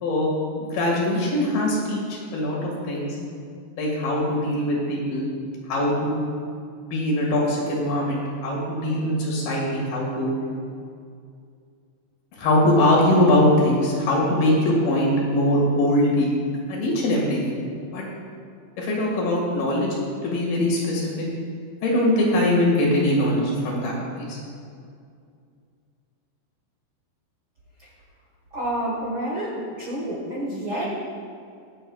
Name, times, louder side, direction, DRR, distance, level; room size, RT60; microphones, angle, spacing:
voice 1, 0.0-3.1 3.8-5.3 5.7-6.2 6.8-10.3 12.4-16.3 16.7-17.4 17.9-18.0 18.8-19.9 20.2-21.3 21.8-24.4, left 1 dB, 65° left, -3 dB, 3.7 m, -22 dB
voice 2, 28.5-30.9, right 1 dB, 60° right, -5 dB, 1.3 m, -29 dB
23.0 x 7.8 x 2.3 m, 2.3 s
omnidirectional pair, 4.8 m